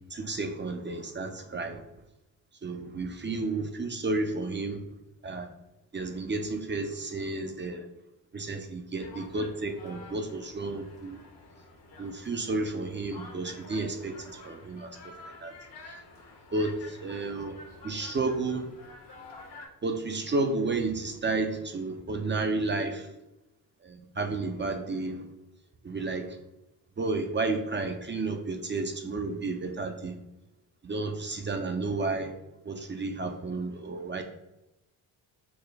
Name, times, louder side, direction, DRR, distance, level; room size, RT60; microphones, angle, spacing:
voice 1, 0.1-1.8 2.6-4.8 5.2-5.5 5.9-7.9 8.3-11.2 12.0-15.1 15.4-15.5 16.5-17.6 17.8-18.7 19.8-23.1 23.8-25.3 25.8-26.4 27.0-30.2 30.8-32.3 32.6-34.2, right 3 dB, 25° right, 5 dB, 0.5 m, -32 dB
sound 1, 9.0-19.7, left 2 dB, 65° left, 1.1 m, -49 dB
4.1 x 2.1 x 3.3 m, 0.93 s
supercardioid pair, 55°, 43 cm